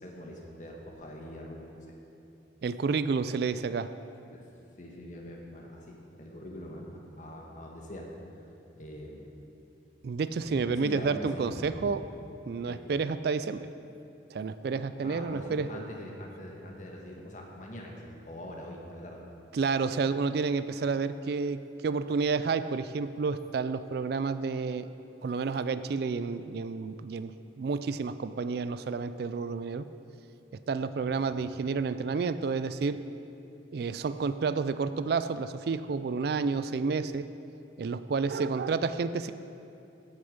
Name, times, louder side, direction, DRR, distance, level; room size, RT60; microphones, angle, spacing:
voice 1, 0.0-1.9 4.3-4.5 4.8-6.9 7.2-8.1 8.8-9.3 10.4-11.9 12.7-12.9 15.0-19.2 31.0-31.3, equal, 40° left, -1 dB, 1.6 m, -43 dB
voice 2, 2.6-3.9 10.0-12.0 12.5-13.7 14.3-15.7 19.5-24.9 25.2-29.9 30.7-33.0 33.7-37.3 37.8-39.3, right 4 dB, 55° right, 13 dB, 0.3 m, -30 dB
15.5 x 6.7 x 5.3 m, 2.7 s
head